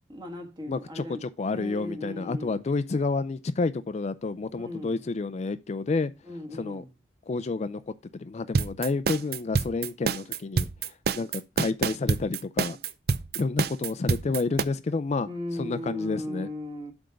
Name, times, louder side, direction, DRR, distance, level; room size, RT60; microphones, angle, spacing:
voice 1, 0.1-1.2 1.5-2.6 4.5-5.0 6.3-6.9 15.3-16.9, left 1 dB, 25° right, 1.5 m, -37 dB
voice 2, 0.7-6.1 6.5-6.8 7.3-12.8 13.3-15.3 15.5-16.5, left 3 dB, 40° left, 0.4 m, -30 dB
sound 1, 8.5-14.6, right 5 dB, 60° right, 0.5 m, -27 dB
7.7 x 3.5 x 6.3 m
head